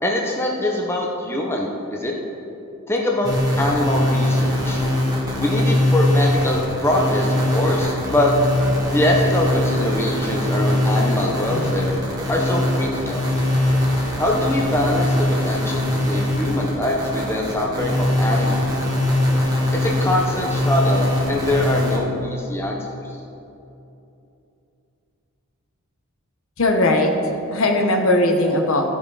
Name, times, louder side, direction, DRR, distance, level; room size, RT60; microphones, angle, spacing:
voice 1, 0.0-2.1 2.9-3.3 3.6-4.8 5.4-8.3 8.9-11.9 12.3-13.2 14.2-15.1 15.5-18.7 19.7-23.2, left 1 dB, 10° left, -1 dB, 0.8 m, -23 dB
sound 1, 3.2-22.0, left 1 dB, 15° right, 1.5 m, -21 dB
voice 2, 26.6-27.1 27.5-28.9, left 1 dB, 65° left, 3 dB, 1.0 m, -18 dB
14.5 x 5.0 x 4.8 m, 2.8 s
head